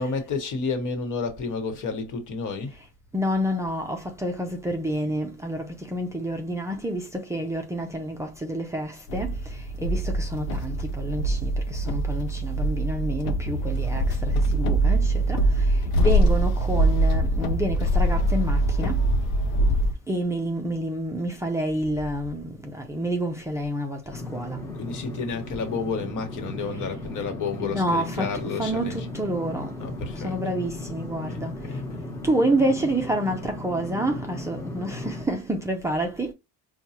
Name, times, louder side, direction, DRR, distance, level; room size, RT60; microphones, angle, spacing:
voice 1, 0.0-2.8 24.7-29.1 29.8-30.4 31.1-32.1, left 4 dB, 55° left, 1.3 m, -31 dB
voice 2, 3.1-9.3 9.8-14.1 14.5-15.4 16.0-19.0 20.1-24.0 24.3-24.6 27.6-28.3 28.6-29.7 30.2-31.5 32.2-36.3, right 1 dB, 10° right, 0.5 m, -28 dB
sound 1, 9.1-19.9, right 1 dB, 80° left, 0.7 m, -23 dB
sound 2, 24.1-35.3, left 2 dB, 10° left, 1.0 m, -36 dB
4.5 x 2.3 x 2.8 m
cardioid pair, 130°, 36 cm